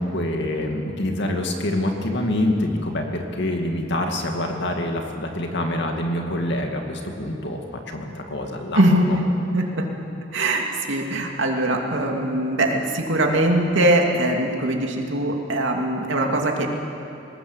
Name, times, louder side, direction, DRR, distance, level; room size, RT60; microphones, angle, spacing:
voice 1, 0.0-9.2, left 1 dB, 65° left, 2 dB, 2.3 m, -26 dB
voice 2, 8.7-9.1 9.5-9.9 10.3-16.7, right 1 dB, 75° right, 1 dB, 2.8 m, -21 dB
21.0 x 20.0 x 8.2 m, 2.8 s
head